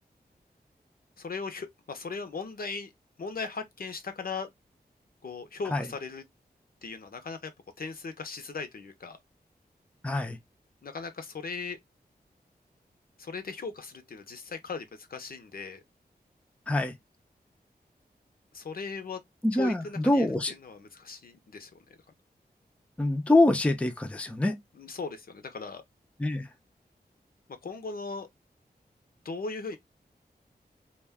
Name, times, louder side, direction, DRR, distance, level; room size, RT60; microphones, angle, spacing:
voice 1, 1.2-2.9 3.2-4.5 5.2-6.2 6.8-7.5 7.8-9.2 10.8-11.8 13.2-15.8 18.5-19.2 19.5-21.8 24.7-25.8 27.6-28.3 29.2-29.8, left 4 dB, 65° left, 0.6 m, -38 dB
voice 2, 10.0-10.4 16.7-16.9 19.4-20.5 23.0-24.6 26.2-26.5, left 2 dB, 5° left, 0.4 m, -25 dB
2.3 x 2.2 x 3.4 m
wide cardioid pair, 85°, 17 cm